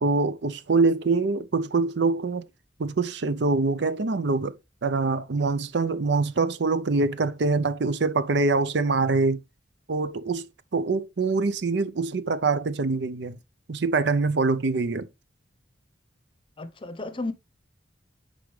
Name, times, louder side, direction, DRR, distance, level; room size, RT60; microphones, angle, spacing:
voice 1, 0.0-2.5 2.8-4.6 4.8-9.4 9.9-13.4 13.7-15.1, right 3 dB, 65° right, 0.6 m, -24 dB
voice 2, 16.6-17.3, left 2 dB, 30° left, 0.8 m, -33 dB
9.8 x 4.9 x 3.2 m
head